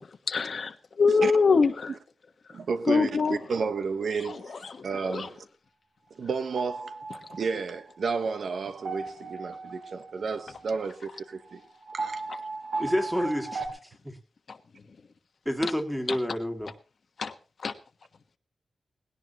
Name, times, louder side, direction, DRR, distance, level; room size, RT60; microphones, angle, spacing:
voice 1, 0.1-1.9 2.5-2.6 2.9-3.4 4.2-5.3 14.5-14.6 15.6-15.7 16.1-16.2 17.2-17.3 17.6-17.7, left 4 dB, 55° left, 1.3 m, -25 dB
voice 2, 2.5-5.4 6.2-7.0 7.3-11.6 11.9-12.2, right 5 dB, 70° right, 1.2 m, -32 dB
sound 1, 6.5-13.7, right 3 dB, 50° right, 4.4 m, -37 dB
voice 3, 12.8-14.2 15.5-16.7, equal, ahead, 2.2 m, -29 dB
19.5 x 17.0 x 3.0 m
wide cardioid pair, 180°, 0 cm